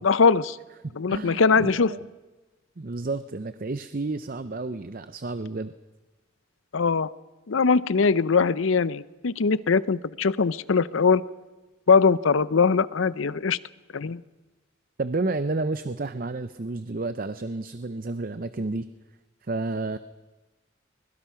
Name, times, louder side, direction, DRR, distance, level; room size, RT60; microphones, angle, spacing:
voice 1, 0.0-0.6 1.0-1.9 6.7-7.1 7.5-11.2 11.9-13.6 13.9-14.2, left 5 dB, 85° left, 17 dB, 0.6 m, -21 dB
voice 2, 0.8-2.1 2.8-5.7 15.0-18.9 19.4-20.0, right 3 dB, 45° right, 12 dB, 0.6 m, -31 dB
24.0 x 21.5 x 5.8 m, 1.1 s
head